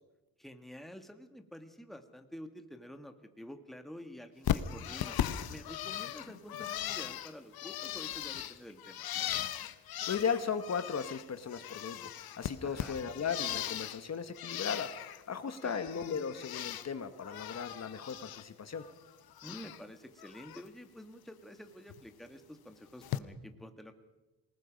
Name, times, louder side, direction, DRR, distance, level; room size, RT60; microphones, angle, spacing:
voice 1, 0.4-9.0 12.6-13.0 15.4-15.8 19.4-23.9, equal, ahead, 7 dB, 1.7 m, -49 dB
Bird, 4.4-11.2 11.5-14.0 14.3-15.2 15.5-16.9 17.2-18.4 18.7-19.8 20.2-20.6 21.9-22.0 23.0-23.2, left 11 dB, 75° left, 1.0 m, -38 dB
voice 2, 10.1-18.8, left 6 dB, 45° left, 10 dB, 1.2 m, -36 dB
27.5 x 19.0 x 5.2 m, 1.1 s
cardioid pair, 115°, 36 cm